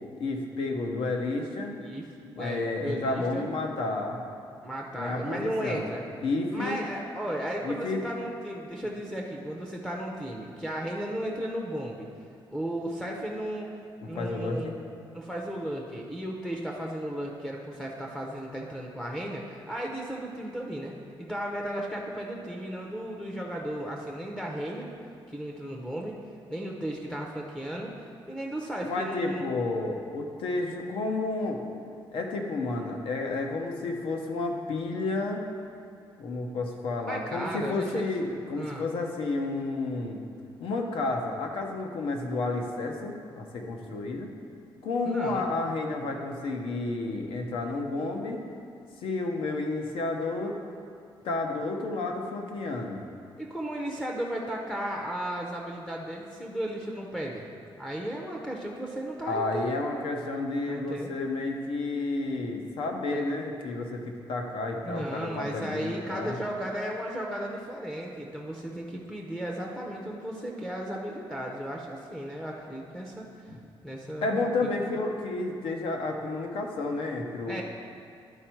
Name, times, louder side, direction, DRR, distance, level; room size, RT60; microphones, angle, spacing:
voice 1, 0.2-1.8 2.2-4.2 4.9-5.9 6.2-6.8 7.6-8.0 14.0-14.7 28.8-31.6 32.1-35.4 36.2-40.2 40.6-44.3 44.8-48.4 49.0-50.5 51.2-53.0 59.3-66.4 73.5-73.6 74.2-77.6, left 2 dB, 75° left, 2 dB, 0.9 m, -31 dB
voice 2, 2.4-3.5 4.6-6.0 6.5-12.1 12.5-13.7 14.1-14.7 15.1-24.9 25.3-26.2 26.5-29.5 37.1-38.0 38.5-38.9 45.0-45.4 53.4-57.5 57.8-59.8 60.7-61.2 63.1-63.4 64.8-73.5 73.8-74.7 77.5-77.6, right 1 dB, 5° left, -2 dB, 0.6 m, -35 dB
11.0 x 4.5 x 4.5 m, 2.4 s
cardioid pair, 165°, 9 cm